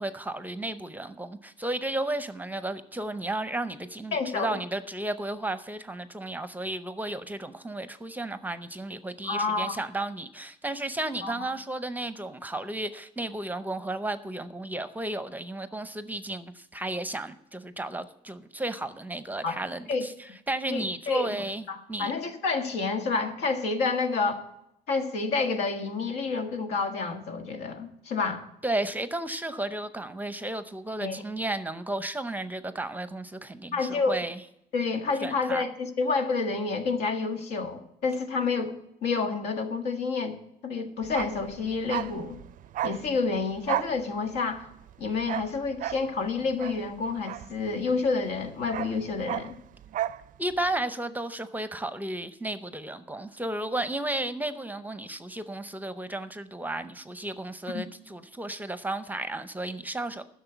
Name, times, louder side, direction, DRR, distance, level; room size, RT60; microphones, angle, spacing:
voice 1, 0.0-21.6 21.9-22.1 28.6-34.4 35.2-35.6 50.4-60.2, right 1 dB, 10° right, 0.6 m, -33 dB
voice 2, 4.1-4.6 9.2-9.8 11.2-11.5 19.4-19.6 19.9-20.0 20.7-24.4 24.9-28.4 31.0-31.2 33.7-34.2 34.7-38.8 39.0-40.4 40.6-42.4 42.8-44.7 45.0-49.6 57.7-57.9, left 4 dB, 80° left, 1.6 m, -29 dB
Bark, 41.0-48.1 48.3-50.3 50.5-50.7, right 13 dB, 50° right, 0.4 m, -34 dB
11.0 x 6.5 x 8.0 m
cardioid pair, 110°, 17 cm